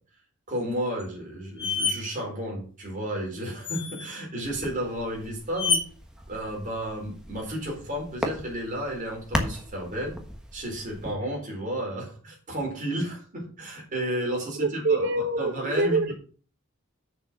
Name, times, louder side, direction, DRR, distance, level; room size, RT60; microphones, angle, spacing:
voice 1, 0.5-5.8 6.3-10.2 10.5-15.1 15.4-16.0, right 1 dB, 35° right, -1 dB, 4.2 m, -32 dB
sound 1, 1.0-1.1 1.6-2.0 3.6-4.2 5.6-5.8, left 4 dB, 25° left, 1.5 m, -27 dB
sound 2, 4.4-11.1, equal, 5° right, 1.4 m, -37 dB
voice 2, 14.6-16.1, right 2 dB, 55° right, 6 dB, 1.2 m, -25 dB
6.9 x 6.7 x 6.1 m, 0.40 s
head